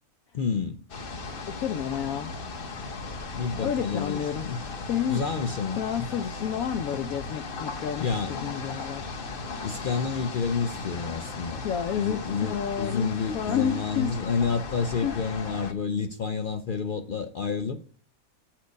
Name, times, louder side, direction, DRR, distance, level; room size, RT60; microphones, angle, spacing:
voice 1, 0.3-0.8 3.3-4.6 5.1-6.1 8.0-8.3 9.6-11.6 12.0-17.8, left 5 dB, 65° left, 0.5 m, -29 dB
sound 1, 0.9-15.7, left 3 dB, 45° left, 1.1 m, -37 dB
voice 2, 1.5-2.4 3.6-4.5 4.9-5.2 5.8-9.1 11.6-13.1 13.3-14.1 15.0-15.2, left 8 dB, 85° left, 1.1 m, -30 dB
8.2 x 4.4 x 5.1 m
omnidirectional pair, 1.5 m